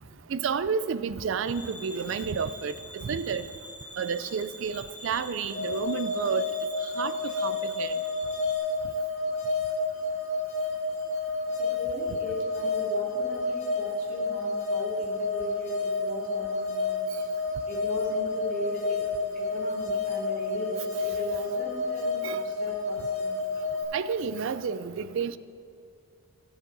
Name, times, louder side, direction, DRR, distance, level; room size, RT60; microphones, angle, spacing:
voice 1, 0.3-3.4 4.0-6.5 7.0-7.9 22.2-22.4 23.9-25.4, right 6 dB, 60° right, 14 dB, 0.4 m, -30 dB
sound 1, 1.4-8.6, equal, 80° left, 2.2 m, -45 dB
sound 2, 5.5-23.8, left 3 dB, 30° left, 1.7 m, -30 dB
voice 2, 11.6-17.0 17.7-19.0 19.3-23.3, left 1 dB, 40° right, -4 dB, 2.5 m, -38 dB
16.0 x 7.2 x 4.0 m, 2.6 s
head